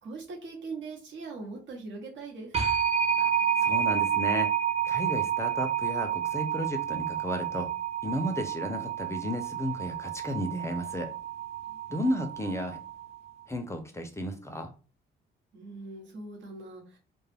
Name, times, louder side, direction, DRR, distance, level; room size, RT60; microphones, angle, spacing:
voice 1, 0.0-2.6 15.5-17.0, right 3 dB, 70° right, 0 dB, 1.0 m, -41 dB
sound 1, 2.5-13.2, right 9 dB, 30° right, 0.6 m, -30 dB
voice 2, 3.6-4.5 4.9-7.7 8.0-11.1 11.9-12.8 13.5-14.7, equal, 15° left, 6 dB, 0.4 m, -33 dB
2.3 x 2.0 x 3.3 m, 0.35 s
cardioid pair, 90°, 20 cm